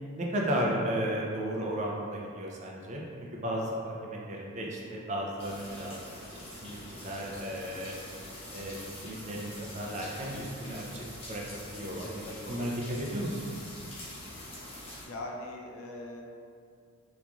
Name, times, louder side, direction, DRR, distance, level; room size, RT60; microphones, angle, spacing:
voice 1, 0.2-6.0 6.5-7.9 8.5-13.6, equal, 35° right, -2 dB, 0.4 m, -34 dB
voice 2, 4.7-5.1 12.0-12.7 14.9-16.2, left 1 dB, 90° left, 0 dB, 0.4 m, -42 dB
sound 1, 5.4-15.1, left 1 dB, 30° left, 0.6 m, -45 dB
2.9 x 2.4 x 2.3 m, 2.3 s
head